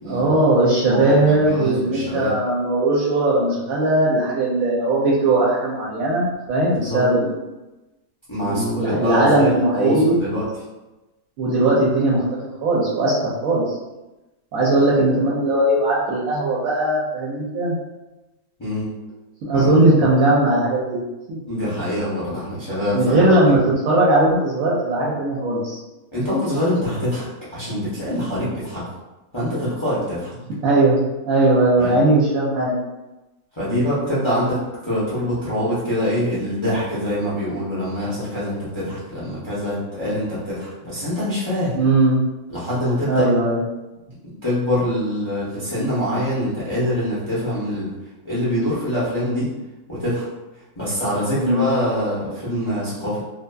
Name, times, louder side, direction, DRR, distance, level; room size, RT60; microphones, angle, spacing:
voice 1, 0.1-7.4 8.4-10.2 11.4-13.8 14.5-17.8 19.4-21.0 21.3-21.4 22.9-25.8 30.6-31.0 31.3-32.8 41.7-42.2 43.1-43.6 51.3-51.7, right 2 dB, 70° right, -5 dB, 0.9 m, -19 dB
voice 2, 0.9-2.4 6.8-7.0 8.3-10.5 18.6-18.9 19.5-19.7 21.5-23.6 26.1-28.9 29.3-30.3 31.8-32.0 33.5-41.8 42.5-43.3 44.0-44.1 44.4-47.9 48.2-49.5 49.9-50.3 50.8-53.2, equal, 35° left, -10 dB, 0.4 m, -24 dB
2.7 x 2.3 x 2.2 m, 1.1 s
omnidirectional pair, 1.6 m